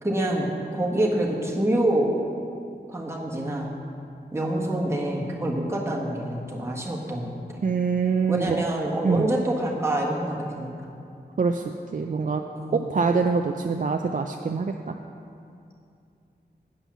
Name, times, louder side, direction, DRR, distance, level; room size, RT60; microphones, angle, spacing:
voice 1, 0.0-2.1 2.9-3.7 4.3-7.6 8.3-10.9 12.5-12.9, right 1 dB, 15° right, -3 dB, 1.5 m, -26 dB
voice 2, 7.6-8.6 9.0-9.3 11.4-11.6 11.9-12.4 12.7-14.9, right 5 dB, 50° right, 4 dB, 0.4 m, -24 dB
8.8 x 5.5 x 7.1 m, 2.5 s
wide cardioid pair, 70°, 17 cm